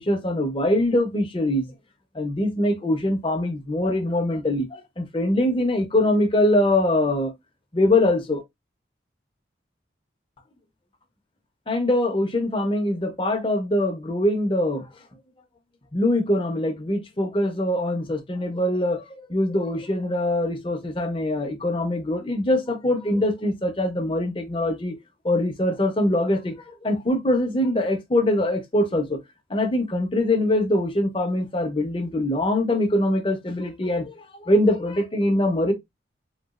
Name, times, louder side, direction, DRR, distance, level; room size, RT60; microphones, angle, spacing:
voice 1, 0.0-1.7 2.1-7.3 7.7-8.4 11.7-14.9 15.9-19.0 19.3-25.0 25.2-29.2 29.5-35.7, left 1 dB, 30° left, 0.6 m, -23 dB
3.8 x 2.3 x 2.4 m
head